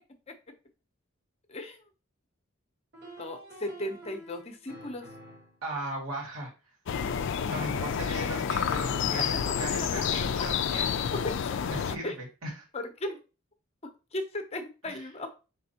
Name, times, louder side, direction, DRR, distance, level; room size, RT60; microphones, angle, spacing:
voice 1, 1.5-1.8 3.2-5.1 7.9-8.0 9.2-9.5 9.8-9.9 10.4-10.5 11.1-11.6 12.0-12.1 12.7-13.2 13.8-15.3, left 1 dB, 30° left, 6 dB, 0.7 m, -36 dB
sound 1, 2.9-5.6 6.9-9.6, right 2 dB, 50° right, 1.2 m, -48 dB
voice 2, 5.6-6.5 7.5-11.0 11.7-12.5 14.9-15.0, right 1 dB, 85° right, -2 dB, 2.2 m, -37 dB
sound 2, 6.9-12.0, left 7 dB, 55° left, 0.3 m, -29 dB
5.3 x 3.3 x 2.8 m, 0.31 s
head